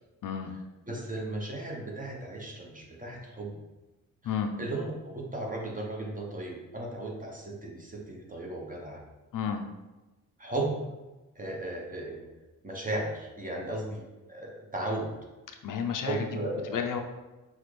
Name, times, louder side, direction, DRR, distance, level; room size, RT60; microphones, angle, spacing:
voice 1, 0.2-0.5 4.2-4.5 9.3-9.6 15.6-16.3 16.7-17.0, left 7 dB, 65° left, 5 dB, 0.5 m, -31 dB
voice 2, 0.9-3.6 4.2-4.3 4.6-9.0 10.4-10.8 11.4-12.3 12.6-14.0 14.3-15.1 16.1-16.9, right 2 dB, 25° right, -1 dB, 1.0 m, -35 dB
5.9 x 2.4 x 3.2 m, 1.1 s
cardioid pair, 95°, 35 cm